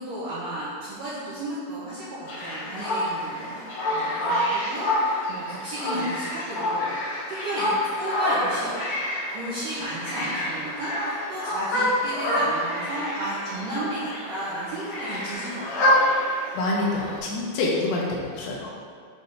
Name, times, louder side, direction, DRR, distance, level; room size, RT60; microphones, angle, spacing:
voice 1, 0.0-3.6 3.9-8.8 9.3-16.1, right 1 dB, 90° right, -9 dB, 1.8 m, -33 dB
sound 1, 2.3-17.2, left 1 dB, 60° left, 2.1 m, -27 dB
voice 2, 16.5-18.7, left 2 dB, 75° left, -4 dB, 2.9 m, -27 dB
8.4 x 3.5 x 4.1 m, 2.1 s
omnidirectional pair, 5.4 m